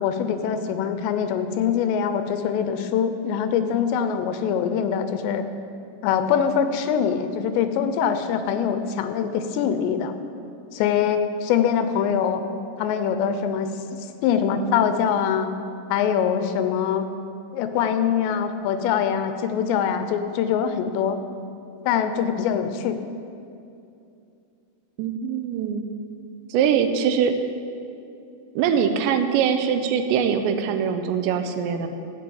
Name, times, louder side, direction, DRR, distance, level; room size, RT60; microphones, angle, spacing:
voice 1, 0.0-5.4 6.0-10.1 10.7-12.4 12.8-13.7 14.2-15.5 15.9-17.1 17.5-21.2 21.8-23.0, left 8 dB, 85° left, 9 dB, 2.9 m, -23 dB
voice 2, 25.0-25.8 26.5-27.4 28.6-31.9, right 7 dB, 85° right, 8 dB, 3.0 m, -22 dB
14.0 x 5.4 x 8.5 m, 2.6 s
omnidirectional pair, 5.0 m